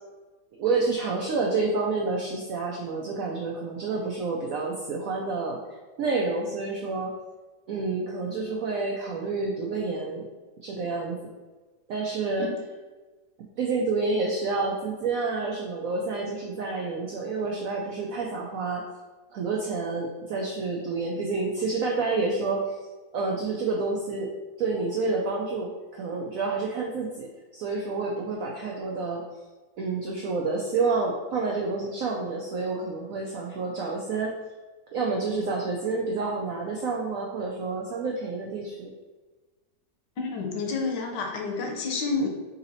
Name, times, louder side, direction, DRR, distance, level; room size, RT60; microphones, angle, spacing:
voice 1, 0.6-7.1 7.7-10.3 10.6-11.3 11.9-12.5 13.6-18.8 19.3-22.8 23.1-24.3 24.6-29.2 29.8-34.4 34.9-38.9, right 3 dB, 85° right, -1 dB, 0.7 m, -29 dB
voice 2, 40.2-42.3, left 3 dB, 70° left, 1 dB, 1.3 m, -29 dB
4.0 x 2.7 x 3.9 m, 1.3 s
omnidirectional pair, 2.0 m